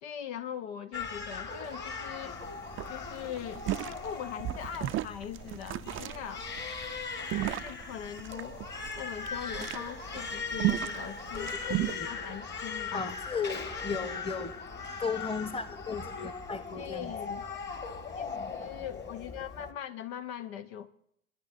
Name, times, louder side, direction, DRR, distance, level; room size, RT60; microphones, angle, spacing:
voice 1, 0.0-2.4 2.9-6.5 7.4-8.6 8.9-13.2 16.7-17.4 18.2-20.9, left 9 dB, 65° left, 0.7 m, -41 dB
Crying sobbing, 0.9-19.7, left 4 dB, 30° left, 1.8 m, -39 dB
sound 1, 2.0-2.1 2.3-2.5 2.8-12.0, right 15 dB, 35° right, 0.5 m, -35 dB
voice 2, 11.3-12.1 12.9-14.5 15.0-17.1 17.5-17.6, left 5 dB, 15° left, 1.2 m, -36 dB
23.5 x 11.0 x 2.7 m
figure-of-eight pair, 65°, 34 cm